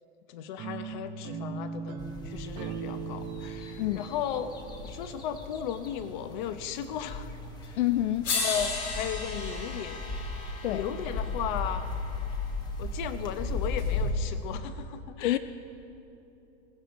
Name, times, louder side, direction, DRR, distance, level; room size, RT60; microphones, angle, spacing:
voice 1, 0.3-4.5 4.8-7.3 7.7-7.8 8.3-10.2 10.7-11.9 12.8-15.4, left 9 dB, 40° left, 10 dB, 0.9 m, -36 dB
sound 1, 0.6-5.7, right 5 dB, 15° right, 0.4 m, -39 dB
sound 2, 2.0-14.1, left 3 dB, 10° left, 0.9 m, -37 dB
sound 3, 7.6-7.7 8.2-12.4 13.8-13.9, left 4 dB, 85° left, 3.8 m, -35 dB
voice 2, 7.8-8.3 10.6-10.8 15.2-15.4, left 15 dB, 70° left, 12 dB, 0.6 m, -27 dB
20.5 x 15.5 x 4.2 m, 2.9 s
supercardioid pair, 155°, 37 cm